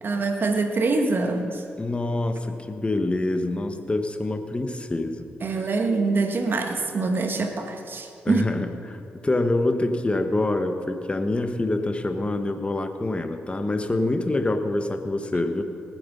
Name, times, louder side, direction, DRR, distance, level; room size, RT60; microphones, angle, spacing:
voice 1, 0.0-1.6 5.4-8.4, right 3 dB, 50° right, 4 dB, 1.7 m, -24 dB
voice 2, 1.8-5.3 5.5-5.7 8.2-15.6, left 2 dB, 25° left, 7 dB, 1.4 m, -26 dB
19.5 x 7.8 x 5.5 m, 2.7 s
supercardioid pair, 55°, 4 cm